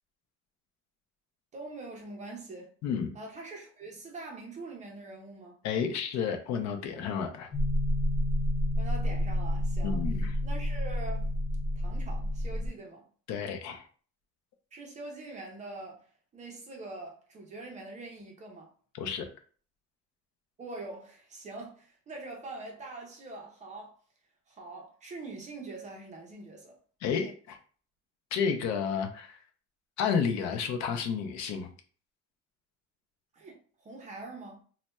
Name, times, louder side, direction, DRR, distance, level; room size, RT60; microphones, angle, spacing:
voice 1, 1.5-2.7 3.1-5.6 8.8-10.0 10.4-11.3 11.8-13.1 14.7-18.7 20.6-24.0 24.5-26.8 33.3-34.6, right 2 dB, 25° right, 0.4 m, -44 dB
voice 2, 5.6-7.5 9.8-10.3 13.3-13.8 18.9-19.3 27.0-27.6 28.3-29.4 30.0-31.7, left 6 dB, 60° left, 0.6 m, -31 dB
sound 1, 7.5-12.7, equal, 85° left, 1.0 m, -29 dB
4.0 x 2.1 x 2.2 m
cardioid pair, 175°, 31 cm